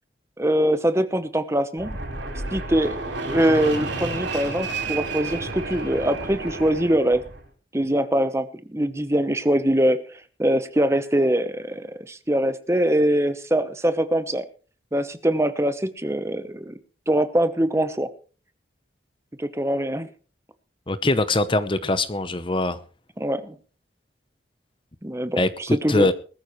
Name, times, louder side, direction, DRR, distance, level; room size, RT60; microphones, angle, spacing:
voice 1, 0.4-2.0 2.5-3.0 3.3-7.2 7.7-14.5 14.9-16.8 17.1-18.1 19.4-20.1 23.2-23.6 25.0-26.1, right 1 dB, 15° right, 1.0 m, -23 dB
Fixed-wing aircraft airplane, 1.8-7.4, right 3 dB, 80° right, 4.9 m, -31 dB
voice 2, 20.9-22.8 25.4-26.1, left 2 dB, 25° left, 0.9 m, -22 dB
20.5 x 13.5 x 3.2 m
head